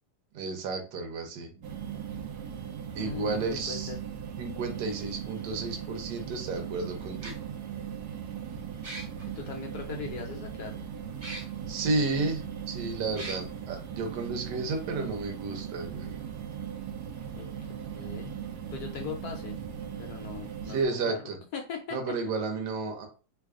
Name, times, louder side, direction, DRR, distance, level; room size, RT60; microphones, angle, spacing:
voice 1, 0.3-1.7 3.0-3.9 4.4-7.4 11.7-16.2 20.7-21.4 21.9-23.1, right 3 dB, 65° right, 4 dB, 1.3 m, -32 dB
sound 1, 1.6-20.9, right 8 dB, 80° right, 0.8 m, -39 dB
voice 2, 2.9-4.0 9.3-10.8 17.3-17.7 17.9-18.3 18.7-19.6 20.0-21.2 21.5-22.0, left 6 dB, 80° left, 1 dB, 0.8 m, -39 dB
sound 2, 6.2-6.3 7.2-7.3 8.8-9.2 11.2-11.4 12.0-12.1 13.2-13.4, right 1 dB, 40° right, 0.7 m, -39 dB
3.3 x 2.3 x 3.5 m, 0.35 s
omnidirectional pair, 2.3 m